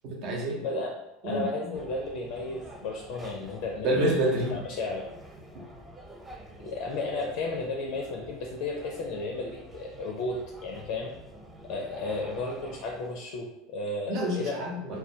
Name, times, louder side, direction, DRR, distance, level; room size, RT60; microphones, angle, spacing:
voice 1, 0.0-0.6 1.2-1.7 3.8-4.6 14.1-15.0, right 1 dB, 55° right, -1 dB, 0.7 m, -28 dB
voice 2, 1.2-4.2 4.5-5.1 6.6-11.1 11.7-14.6, left 2 dB, 65° left, 0 dB, 0.4 m, -33 dB
sound 1, 1.7-13.2, right 1 dB, 15° right, 0.4 m, -48 dB
2.1 x 2.1 x 2.7 m, 0.89 s
hypercardioid pair, 90°, 0 cm